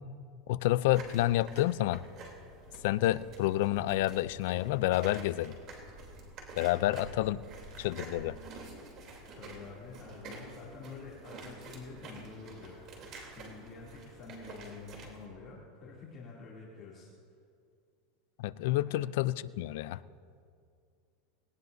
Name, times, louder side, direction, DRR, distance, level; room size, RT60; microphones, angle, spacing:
voice 1, 0.5-2.0 2.8-5.5 6.6-7.5 7.8-8.4 18.4-20.0, left 15 dB, 70° left, 17 dB, 0.4 m, -29 dB
sound 1, 0.9-15.3, right 2 dB, 45° right, 3.2 m, -48 dB
voice 2, 9.3-12.8 13.2-17.1 18.9-19.1, left 4 dB, 30° left, -5 dB, 2.8 m, -48 dB
19.5 x 19.0 x 2.7 m, 2.3 s
supercardioid pair, 130°, 0 cm